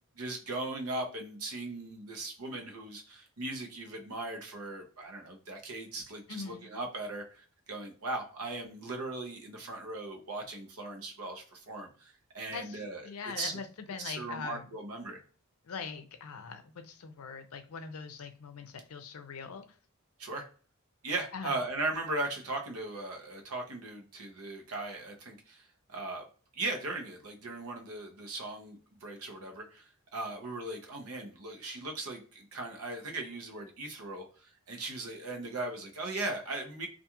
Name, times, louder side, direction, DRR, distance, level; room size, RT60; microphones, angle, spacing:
voice 1, 0.2-13.5 14.0-15.2 20.2-20.5 21.0-26.2 26.5-36.9, right 2 dB, 80° right, 0.7 m, -38 dB
voice 2, 6.3-6.7 12.5-12.8 13.0-14.7 15.6-19.6 21.3-21.5, left 5 dB, 70° left, 0.5 m, -42 dB
2.4 x 2.3 x 2.8 m
head